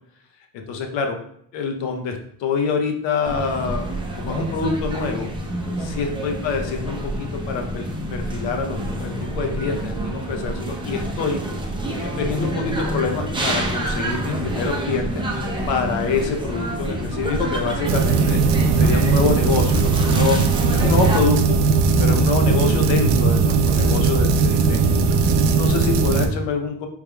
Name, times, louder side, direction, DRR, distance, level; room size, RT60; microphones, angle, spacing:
voice 1, 0.5-1.2 1.5-3.9 4.2-5.3 5.8-11.4 11.9-15.1 15.7-18.4 18.7-20.4 20.7-21.6 22.0-24.9 25.5-26.9, left 5 dB, 85° left, 4 dB, 0.8 m, -26 dB
sound 1, 3.2-21.2, right 1 dB, 10° right, 0.5 m, -27 dB
sound 2, 17.9-26.3, right 4 dB, 70° right, 0.6 m, -18 dB
4.8 x 3.4 x 2.2 m, 0.67 s
cardioid pair, 125°, 43 cm